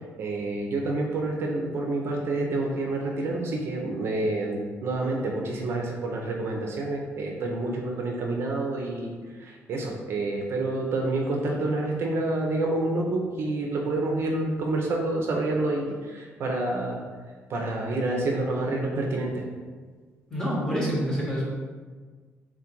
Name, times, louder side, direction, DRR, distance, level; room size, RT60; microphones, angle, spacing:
voice 1, 0.2-17.0 17.5-19.5, right 2 dB, 55° right, 0 dB, 0.5 m, -28 dB
voice 2, 20.3-21.4, equal, 15° left, -7 dB, 1.3 m, -27 dB
3.7 x 2.4 x 4.4 m, 1.5 s
cardioid pair, 140°, 5 cm